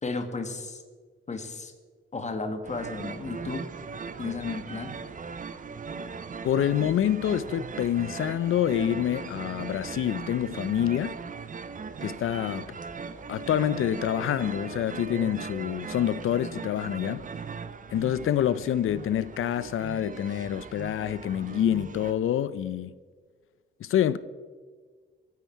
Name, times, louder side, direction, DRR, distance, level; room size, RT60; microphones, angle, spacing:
voice 1, 0.0-0.8 1.3-1.7 2.1-3.6 4.2-4.9, left 3 dB, 35° left, 1.8 m, -33 dB
sound 1, 2.6-22.1, right 5 dB, 40° right, 0.7 m, -39 dB
voice 2, 6.4-11.2 12.0-12.7 13.3-17.3 17.9-22.9 23.8-24.2, left 10 dB, 90° left, 0.6 m, -27 dB
23.5 x 9.4 x 4.6 m
wide cardioid pair, 120°, 21 cm